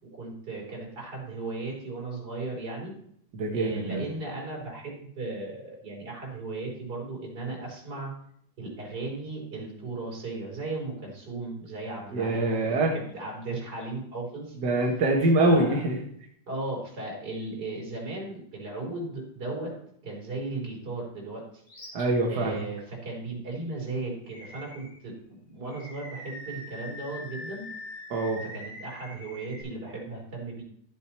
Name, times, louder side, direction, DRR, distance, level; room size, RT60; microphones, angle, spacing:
voice 1, 0.0-2.9 3.5-8.1 8.6-14.9 15.4-15.8 16.5-19.7 20.0-21.6 22.3-27.6 28.4-30.6, right 2 dB, 30° right, -3 dB, 4.5 m, -36 dB
voice 2, 3.3-4.0 12.1-12.9 14.6-15.9 21.9-22.6 28.1-28.4, right 2 dB, 50° right, -1 dB, 1.4 m, -24 dB
Animal, 21.7-22.0 22.5-22.6 24.3-25.0 25.7-29.6, left 1 dB, 55° left, 6.8 m, -43 dB
13.0 x 7.4 x 4.4 m, 0.68 s
omnidirectional pair, 3.7 m